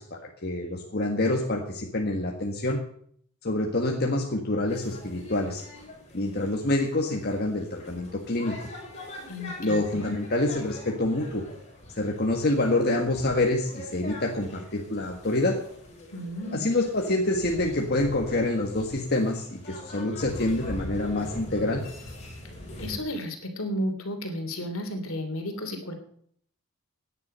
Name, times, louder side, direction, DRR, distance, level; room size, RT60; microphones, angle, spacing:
voice 1, 0.0-2.8 3.4-5.6 6.1-8.7 9.6-11.4 11.9-15.6 16.5-21.8, left 2 dB, 45° left, 0 dB, 1.6 m, -27 dB
sound 1, 4.7-23.0, left 1 dB, 30° left, 6.0 m, -42 dB
voice 2, 9.2-10.1 16.1-16.7 22.8-25.9, left 1 dB, 70° left, 6 dB, 3.0 m, -33 dB
17.5 x 10.0 x 5.6 m, 0.63 s
head